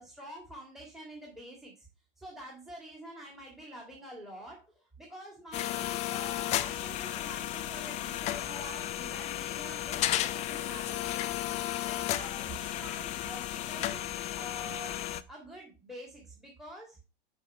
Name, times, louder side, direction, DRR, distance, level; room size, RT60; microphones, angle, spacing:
voice 1, 0.0-1.7 2.2-4.6 5.0-11.3 11.8-14.1 14.3-15.0 15.3-17.0, right 1 dB, ahead, 0 dB, 1.9 m, -47 dB
sound 1, 5.5-15.2, left 13 dB, 25° left, 0.4 m, -34 dB
6.1 x 5.4 x 4.2 m, 0.31 s
hypercardioid pair, 110°, 29 cm